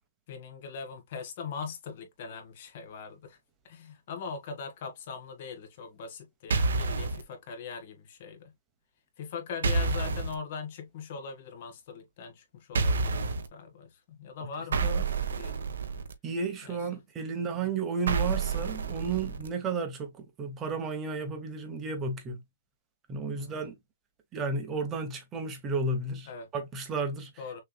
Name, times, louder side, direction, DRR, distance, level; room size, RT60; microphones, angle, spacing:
voice 1, 0.3-3.4 3.6-8.5 9.2-15.6 16.6-16.8 17.3-17.5 23.3-23.6 26.3-26.5 27.4-27.6, left 5 dB, 40° left, 1.6 m, -41 dB
sound 1, 6.5-7.2 9.6-10.3 12.7-13.5 14.7-16.1 18.1-19.5, right 4 dB, 85° right, 1.2 m, -28 dB
voice 2, 16.2-22.4 23.1-23.8 24.3-27.3, right 4 dB, 15° right, 1.1 m, -33 dB
6.5 x 3.2 x 2.3 m
hypercardioid pair, 170°, 0 cm